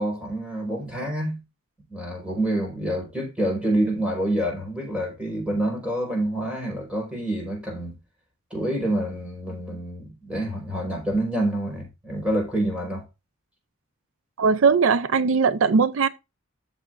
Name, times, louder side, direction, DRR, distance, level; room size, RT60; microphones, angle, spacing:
voice 1, 0.0-1.4 1.9-8.0 8.5-13.0, right 1 dB, 5° right, 4.7 m, -27 dB
voice 2, 14.4-16.1, right 5 dB, 70° right, 0.5 m, -19 dB
14.0 x 6.4 x 2.6 m
head